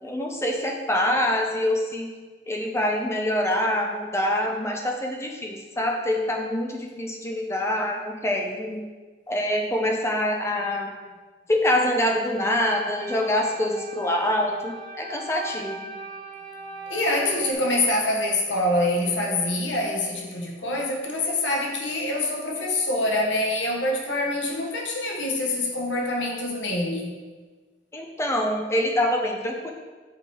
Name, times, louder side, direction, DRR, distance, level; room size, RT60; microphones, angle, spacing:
voice 1, 0.0-2.1 2.5-8.8 9.3-10.9 11.5-15.9 27.9-29.7, left 1 dB, 15° left, 1 dB, 0.8 m, -25 dB
sound 1, 12.5-17.5, right 3 dB, 70° right, 2.0 m, -39 dB
voice 2, 16.9-27.2, left 1 dB, 90° left, -1 dB, 1.3 m, -25 dB
8.3 x 4.4 x 3.5 m, 1.4 s
head